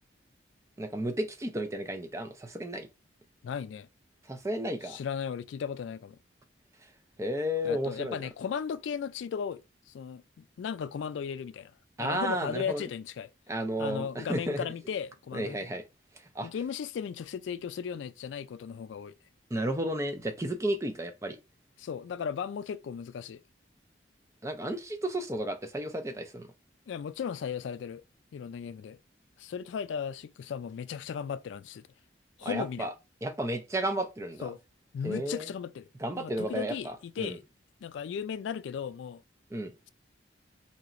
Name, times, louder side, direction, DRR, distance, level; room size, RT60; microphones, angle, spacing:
voice 1, 0.8-2.9 4.3-5.0 7.2-8.2 12.0-12.9 13.5-14.7 15.3-15.8 16.3-16.5 19.5-21.4 24.4-26.5 32.4-32.9 33.2-34.5 35.0-35.5 36.0-37.4 39.5-39.7, right 1 dB, 15° right, 0.4 m, -33 dB
voice 2, 3.4-3.9 4.8-6.2 7.6-11.7 12.0-13.3 13.8-15.6 16.4-19.1 21.8-23.4 26.9-28.0 28.3-29.0 29.4-31.8 32.4-32.9 34.4-34.6 34.9-35.9 36.2-37.4 37.8-39.2, left 7 dB, 80° left, 0.3 m, -36 dB
4.1 x 2.9 x 2.4 m
head